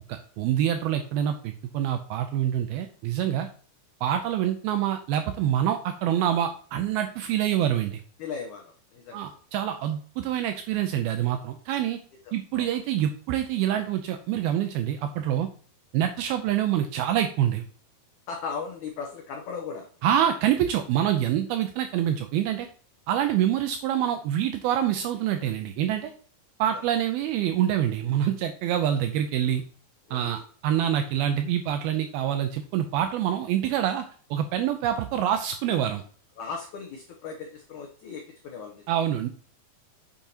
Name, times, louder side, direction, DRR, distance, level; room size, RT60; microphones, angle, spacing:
voice 1, 0.1-3.5 4.0-8.0 9.1-12.0 12.3-15.5 15.9-17.6 20.0-22.7 23.1-26.1 26.6-29.6 30.1-34.1 34.3-36.0 38.9-39.3, right 10 dB, 80° right, 7 dB, 2.3 m, -26 dB
voice 2, 8.2-9.2 12.3-12.7 18.3-19.9 30.1-30.4 36.4-38.8, left 5 dB, 80° left, 2 dB, 1.7 m, -37 dB
8.0 x 6.8 x 2.8 m, 0.44 s
omnidirectional pair, 4.7 m